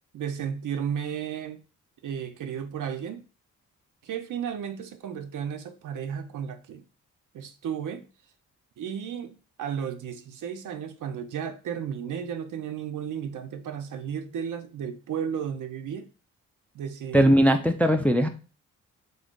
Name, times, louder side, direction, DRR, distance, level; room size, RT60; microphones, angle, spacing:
voice 1, 0.1-1.6 2.0-3.3 4.0-6.8 7.3-8.1 8.8-16.1 16.7-17.3, right 8 dB, 60° right, 0.5 m, -33 dB
voice 2, 17.1-18.3, equal, 5° left, 0.4 m, -19 dB
2.6 x 2.5 x 3.6 m
supercardioid pair, 45°, 36 cm